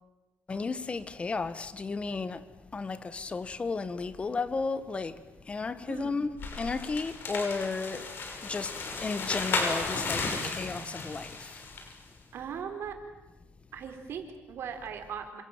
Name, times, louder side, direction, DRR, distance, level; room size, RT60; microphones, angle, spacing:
voice 1, 0.5-2.4 2.7-5.2 5.5-6.3 6.6-8.1 8.4-8.7 9.0-11.6, left 4 dB, 25° left, 1.5 m, -33 dB
voice 2, 5.9-6.3 12.3-13.0 13.7-15.4, right 7 dB, 60° right, 4.4 m, -39 dB
sound 1, 6.4-11.9, left 4 dB, 50° left, 6.1 m, -34 dB
29.0 x 26.0 x 7.5 m
cardioid pair, 130°, 5 cm